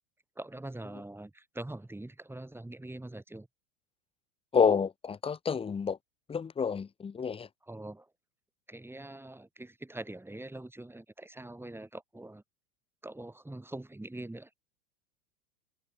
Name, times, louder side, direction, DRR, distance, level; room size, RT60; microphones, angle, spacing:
voice 1, 0.4-3.5 7.6-8.1 8.7-12.4 13.0-14.5, right 1 dB, 5° right, 7.1 m, -43 dB
voice 2, 4.5-6.0 6.3-7.5, left 6 dB, 15° left, 1.1 m, -28 dB
open air
figure-of-eight pair, 90°, 42 cm